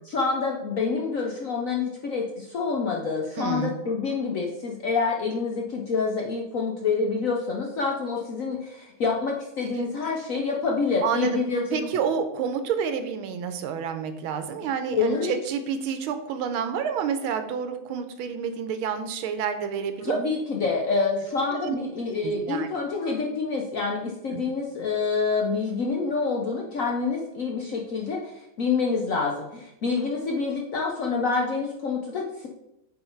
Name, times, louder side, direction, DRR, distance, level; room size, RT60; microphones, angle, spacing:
voice 1, 0.0-11.9 14.6-15.3 20.0-32.5, left 4 dB, 60° left, 0 dB, 0.8 m, -27 dB
voice 2, 3.4-3.8 11.0-11.4 11.7-20.2 21.5-21.8 22.2-22.8 24.3-24.4, right 7 dB, 85° right, 8 dB, 1.5 m, -29 dB
8.1 x 3.9 x 4.4 m, 0.87 s
omnidirectional pair, 2.3 m